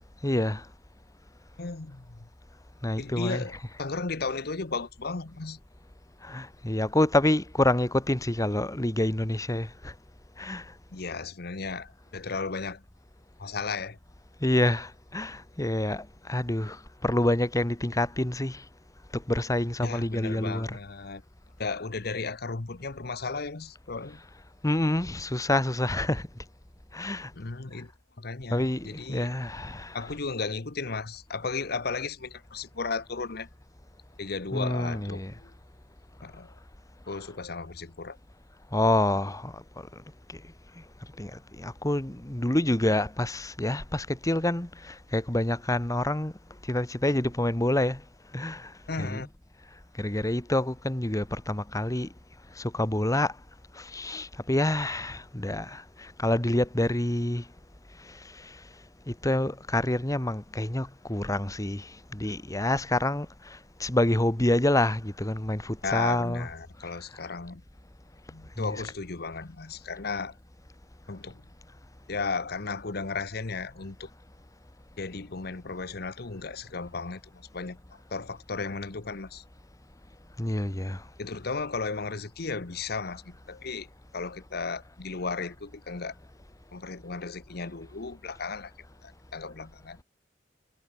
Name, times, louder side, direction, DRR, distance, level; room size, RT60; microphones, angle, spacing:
voice 1, 0.2-0.6 2.8-3.6 6.2-9.9 10.4-10.6 14.4-18.6 19.1-20.8 24.6-26.3 26.9-27.3 28.5-30.1 34.5-35.3 37.1-37.2 38.7-39.6 41.2-46.3 46.7-48.0 48.3-48.7 49.0-49.2 50.0-52.1 52.6-53.3 53.7-57.4 58.3-58.5 59.1-66.5 68.6-68.8 80.4-81.0, left 1 dB, 20° left, 1.4 m, -27 dB
voice 2, 1.6-2.3 3.0-3.5 3.8-5.6 10.9-12.8 13.4-14.0 19.8-21.2 21.6-24.2 27.3-27.9 28.2-29.3 29.9-33.5 34.2-35.5 36.2-36.5 37.1-38.2 48.9-49.3 65.8-67.6 68.3-70.3 71.1-71.4 72.1-74.1 75.0-79.4 81.2-83.9 84.1-86.1 86.7-88.7 89.0-90.0, left 4 dB, 60° left, 1.1 m, -35 dB
head